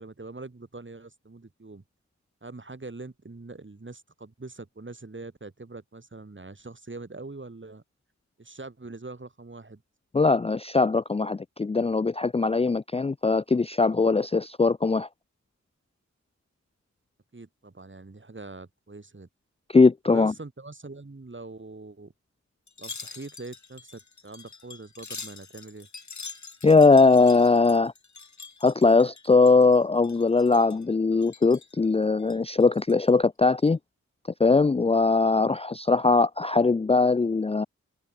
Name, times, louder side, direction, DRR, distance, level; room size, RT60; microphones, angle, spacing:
voice 1, 0.0-1.8 2.4-7.8 8.4-9.8 17.3-19.3 20.1-22.1 22.8-25.9, right 3 dB, 40° right, 4.2 m, -43 dB
voice 2, 10.1-15.1 19.7-20.3 26.6-27.9 28.6-33.8 34.4-37.7, left 4 dB, 20° left, 0.4 m, -20 dB
Wind chime, 22.7-29.8 30.0-30.8 31.2-31.7 32.2-33.1 33.5-33.7, left 4 dB, 70° left, 6.9 m, -44 dB
cardioid pair, 45°, 30 cm